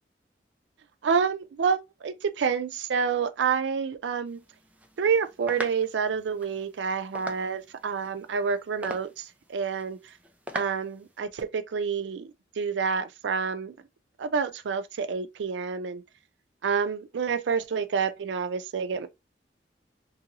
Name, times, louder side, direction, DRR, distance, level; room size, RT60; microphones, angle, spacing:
voice 1, 1.0-4.4 5.0-10.0 10.5-12.3 12.6-13.7 14.2-16.0 16.6-19.1, right 6 dB, 90° right, 0.4 m, -28 dB
sound 1, 4.3-11.2, right 1 dB, 10° right, 0.4 m, -43 dB
2.7 x 2.6 x 2.7 m
head